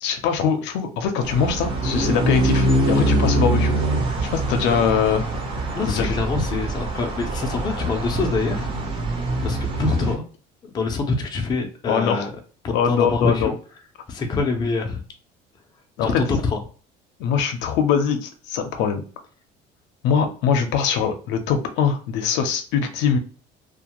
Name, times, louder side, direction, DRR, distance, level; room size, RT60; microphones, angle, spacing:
voice 1, 0.0-3.7 4.2-5.3 5.9-6.1 11.9-12.3 12.7-13.5 16.0-16.2 17.2-19.0 20.0-23.2, left 7 dB, 80° left, 6 dB, 0.5 m, -22 dB
sound 1, 1.2-10.2, right 1 dB, 30° right, 0.7 m, -24 dB
voice 2, 5.6-8.7 9.4-10.2 10.6-12.3 12.6-13.5 14.1-15.0 16.0-16.6, left 3 dB, 25° left, 3 dB, 0.4 m, -25 dB
2.5 x 2.2 x 2.9 m, 0.38 s
cardioid pair, 155°, 19 cm